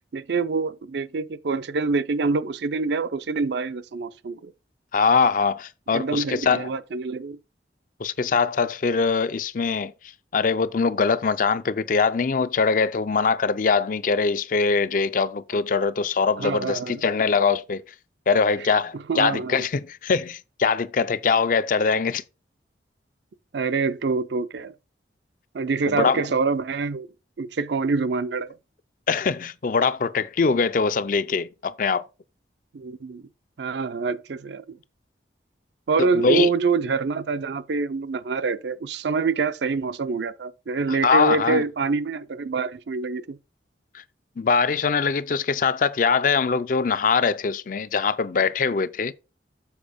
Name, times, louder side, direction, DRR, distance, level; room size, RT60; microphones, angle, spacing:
voice 1, 0.1-4.5 5.9-7.4 16.4-17.0 19.1-19.7 23.5-24.7 25.5-27.1 27.4-28.5 32.7-33.3 33.6-34.8 35.9-43.4, right 4 dB, 70° right, 0.5 m, -26 dB
voice 2, 4.9-6.7 8.0-9.9 10.3-17.8 18.3-22.2 25.9-26.3 29.1-32.0 36.0-36.5 41.0-41.6 43.9-44.0 44.4-49.1, left 5 dB, 45° left, 0.4 m, -22 dB
7.2 x 4.3 x 5.0 m
head